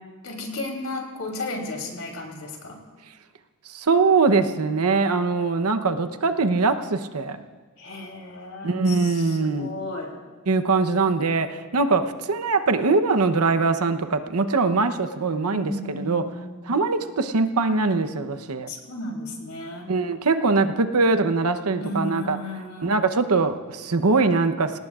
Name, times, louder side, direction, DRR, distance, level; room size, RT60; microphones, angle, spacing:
voice 1, 0.2-2.8 7.8-10.1 15.5-16.6 18.7-19.9 21.8-23.1, left 2 dB, 75° left, 1 dB, 3.2 m, -34 dB
voice 2, 3.7-7.4 8.6-9.7 10.5-16.2 16.7-18.7 19.9-22.4 22.8-24.8, right 4 dB, 85° right, 9 dB, 0.9 m, -22 dB
25.5 x 18.0 x 2.5 m, 1.4 s
head